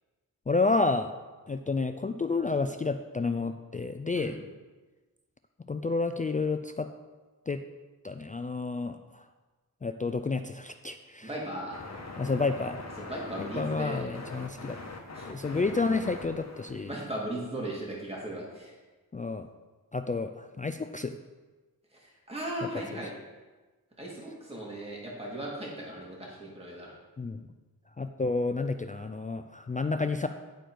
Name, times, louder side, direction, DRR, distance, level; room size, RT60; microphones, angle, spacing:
voice 1, 0.5-1.1 1.5-4.4 5.7-6.9 7.5-7.6 8.0-9.2 9.8-11.3 12.2-12.8 13.4-14.8 15.2-16.9 19.1-19.5 19.9-21.2 22.9-23.0 27.2-27.5 28.0-30.3, left 3 dB, 20° left, 8 dB, 0.3 m, -30 dB
voice 2, 11.2-11.8 13.0-14.1 15.1-15.6 16.8-18.7 22.3-23.1 24.0-26.9, right 1 dB, 15° right, -3 dB, 2.2 m, -37 dB
sound 1, 11.7-17.2, left 3 dB, 45° left, 1.2 m, -42 dB
10.5 x 4.6 x 4.5 m, 1.2 s
cardioid pair, 65°, 37 cm